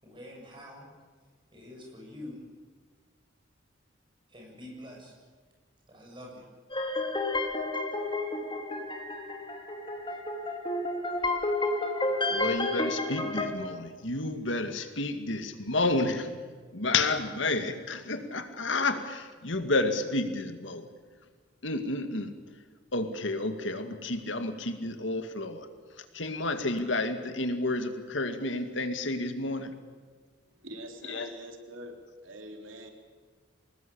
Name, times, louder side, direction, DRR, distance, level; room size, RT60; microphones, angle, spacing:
voice 1, 0.0-0.9 1.5-2.4 4.3-5.1 5.9-6.5, left 1 dB, 25° right, 0 dB, 7.9 m, -46 dB
sound 1, 6.7-13.5, left 2 dB, 25° left, 2.8 m, -31 dB
voice 2, 12.3-16.3 16.7-20.9 21.6-22.3 22.9-25.7 26.0-29.7 31.0-31.3, left 2 dB, 70° left, 8 dB, 2.1 m, -30 dB
voice 3, 30.5-32.9, equal, 85° right, 4 dB, 3.7 m, -44 dB
25.5 x 20.0 x 8.7 m, 1.6 s
head